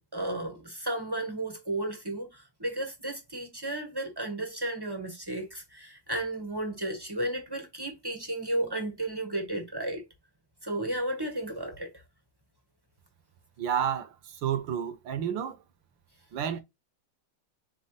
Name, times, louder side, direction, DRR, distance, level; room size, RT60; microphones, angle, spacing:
voice 1, 0.1-10.0 10.6-11.9, right 1 dB, 20° right, 0.5 m, -33 dB
voice 2, 13.6-15.6 16.3-16.6, right 9 dB, 70° right, 1.4 m, -30 dB
4.3 x 4.2 x 2.7 m
omnidirectional pair, 2.3 m